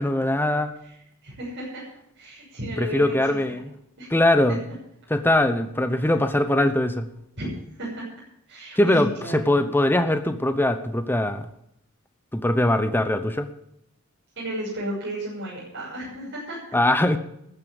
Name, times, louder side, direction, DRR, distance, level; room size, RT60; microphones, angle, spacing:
voice 1, 0.0-0.7 2.8-3.7 4.1-4.6 5.1-7.1 8.8-11.5 12.3-13.5 16.7-17.2, left 1 dB, 10° left, 10 dB, 0.8 m, -21 dB
voice 2, 0.8-1.9 2.1-3.6 4.0-4.1 4.5-4.6 6.0-6.2 7.4-7.5 7.8-8.1 8.5-9.7 14.3-16.6, right 1 dB, 55° right, -8 dB, 6.7 m, -34 dB
14.0 x 9.6 x 7.1 m, 0.77 s
head